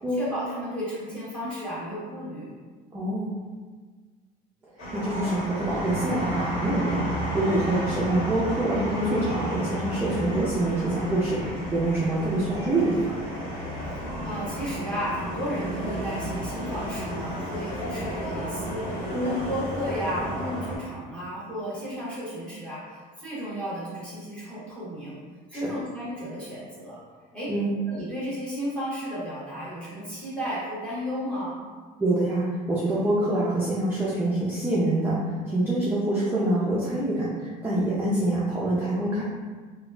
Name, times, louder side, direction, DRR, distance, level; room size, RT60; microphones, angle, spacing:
voice 1, 0.1-2.5 14.2-25.2 25.5-27.0 27.3-27.5 27.9-31.6, equal, 5° left, -9 dB, 1.2 m, -33 dB
voice 2, 2.9-3.3 4.9-13.2 19.1-19.3 25.5-25.7 27.5-27.7 32.0-39.2, right 1 dB, 15° right, -7 dB, 0.5 m, -26 dB
sound 1, 4.8-20.8, equal, 85° left, 1.2 m, -32 dB
3.9 x 2.3 x 2.3 m, 1.5 s
cardioid pair, 145°, 17 cm